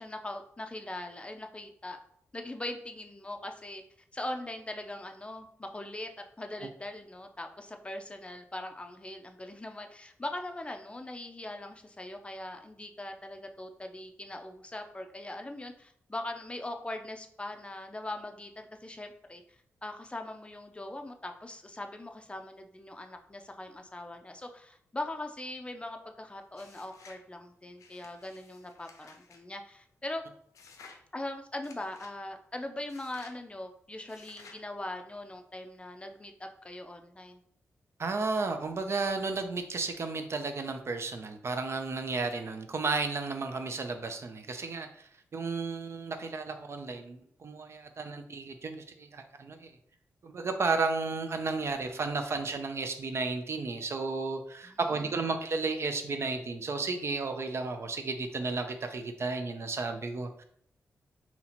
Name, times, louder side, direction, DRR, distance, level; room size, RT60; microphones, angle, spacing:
voice 1, 0.0-2.0 2.3-3.8 4.1-6.1 6.4-19.4 19.8-30.2 31.1-37.4 54.6-55.1, left 1 dB, 20° left, 5 dB, 0.4 m, -41 dB
sound 1, 26.5-27.2 27.8-29.4 30.5-31.0 31.6-32.2 32.9-33.4 34.1-34.6, left 4 dB, 90° left, 0.5 m, -54 dB
voice 2, 38.0-44.9 45.3-49.7 50.2-60.4, right 3 dB, 55° right, 6 dB, 0.5 m, -33 dB
2.8 x 2.8 x 4.2 m, 0.66 s
cardioid pair, 70°, 5 cm